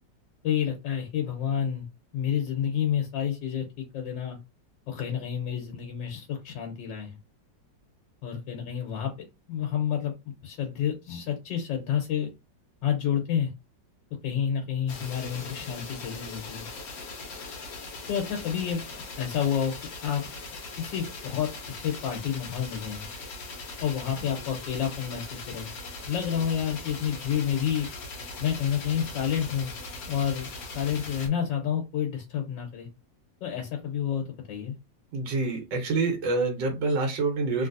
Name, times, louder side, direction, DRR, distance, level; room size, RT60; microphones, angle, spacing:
voice 1, 0.4-1.9 2.1-4.4 4.9-7.2 8.2-12.3 12.8-13.5 14.2-16.7 18.1-18.8 19.2-19.7 20.0-20.3 20.8-23.1 23.8-25.7 26.1-27.9 28.4-29.7 30.1-30.5 30.7-32.9 33.4-34.7, left 8 dB, 80° left, 1 dB, 1.5 m, -29 dB
sound 1, 14.9-31.3, left 3 dB, 60° left, 1.2 m, -40 dB
voice 2, 35.1-37.7, right 3 dB, 80° right, 1 dB, 1.5 m, -27 dB
3.3 x 2.6 x 2.5 m, 0.25 s
omnidirectional pair, 2.0 m